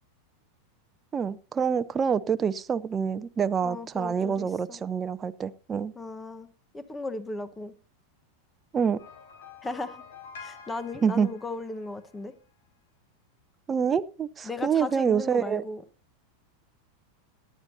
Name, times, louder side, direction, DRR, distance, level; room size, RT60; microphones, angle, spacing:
voice 1, 1.1-5.9 8.7-9.0 11.0-11.3 13.7-15.6, right 7 dB, 25° right, 13 dB, 0.7 m, -26 dB
voice 2, 3.6-4.8 5.9-6.5 6.7-7.7 9.6-10.0 10.4-12.3 14.4-15.8, left 3 dB, 15° left, 12 dB, 1.3 m, -36 dB
sound 1, 9.0-12.3, left 5 dB, 80° left, 4.8 m, -48 dB
18.0 x 11.0 x 2.8 m, 0.33 s
hypercardioid pair, 110°, 0 cm